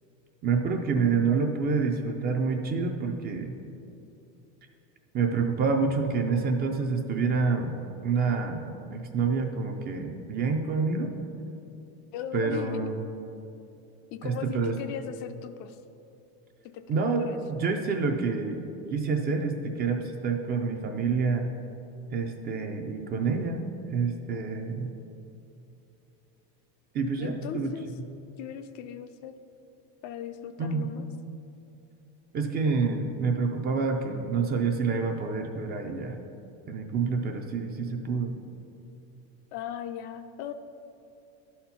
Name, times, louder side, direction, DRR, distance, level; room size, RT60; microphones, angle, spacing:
voice 1, 0.4-3.5 5.1-7.7 8.0-11.1 12.3-12.9 14.2-14.8 16.9-18.6 18.9-21.5 22.1-23.6 23.9-24.9 26.9-27.7 30.6-30.9 32.3-36.2 36.7-38.4, right 4 dB, 25° right, 4 dB, 0.4 m, -27 dB
voice 2, 12.1-12.9 14.1-15.8 16.7-17.4 24.3-24.8 27.2-27.9 28.4-29.3 30.0-31.1 39.5-40.5, left 9 dB, 50° left, 9 dB, 0.4 m, -38 dB
12.0 x 4.3 x 5.7 m, 2.8 s
cardioid pair, 160°, 39 cm